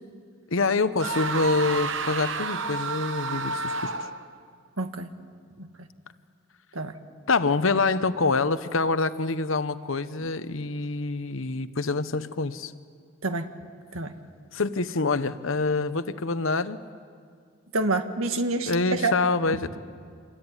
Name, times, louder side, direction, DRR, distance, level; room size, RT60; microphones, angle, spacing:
voice 1, 0.5-4.1 7.3-12.7 14.5-16.8 18.7-19.8, left 3 dB, 75° left, 12 dB, 1.0 m, -26 dB
sound 1, 1.0-4.3, right 4 dB, 65° right, 1.1 m, -30 dB
voice 2, 4.8-5.1 6.8-6.9 13.2-13.5 13.9-14.1 17.7-19.1, right 2 dB, 90° right, 8 dB, 1.7 m, -27 dB
27.0 x 21.5 x 9.9 m, 2.2 s
head